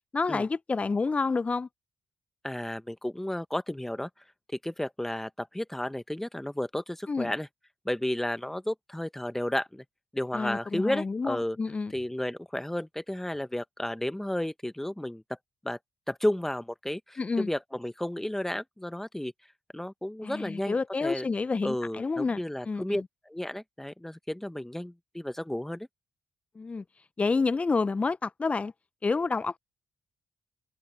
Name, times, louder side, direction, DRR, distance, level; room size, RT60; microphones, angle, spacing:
voice 1, 0.1-1.7 7.1-7.3 10.3-11.9 17.2-17.5 20.2-23.0 26.6-26.8 27.2-28.7 29.0-29.6, left 4 dB, 35° left, 0.9 m, -29 dB
voice 2, 2.4-4.1 4.6-7.5 7.8-9.8 10.1-11.6 11.9-15.2 15.6-15.8 16.1-19.3 19.7-20.7 21.0-21.3 21.6-25.9, left 1 dB, 10° left, 1.5 m, -32 dB
hypercardioid pair, 40°, 4 cm